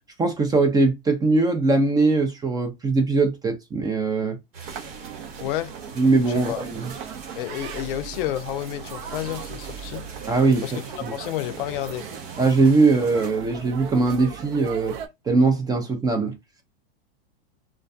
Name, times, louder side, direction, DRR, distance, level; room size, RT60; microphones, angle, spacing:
voice 1, 0.2-4.4 6.0-6.9 10.3-10.6 11.0-11.1 12.4-14.9 15.3-16.4, right 3 dB, 15° right, 0.4 m, -21 dB
sound 1, 4.5-13.3, right 5 dB, 70° right, 1.1 m, -43 dB
sound 2, 4.6-15.1, right 7 dB, 55° right, 0.6 m, -38 dB
voice 2, 5.4-5.7 6.5-6.6 7.3-10.1 10.6-10.8 11.1-12.1, left 13 dB, 60° left, 0.4 m, -30 dB
2.2 x 2.1 x 2.6 m
hypercardioid pair, 115°, 30 cm